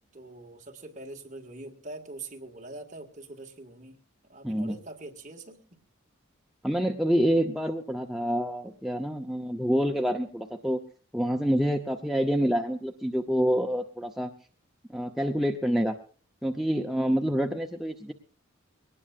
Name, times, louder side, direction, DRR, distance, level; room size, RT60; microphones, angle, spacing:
voice 1, 0.1-4.0 4.3-5.8, right 2 dB, 35° right, 2 dB, 1.8 m, -43 dB
voice 2, 4.4-4.8 6.6-10.8 11.1-14.3 14.9-16.0 16.4-18.1, equal, ahead, 3 dB, 0.7 m, -27 dB
21.5 x 18.5 x 2.5 m, 0.40 s
head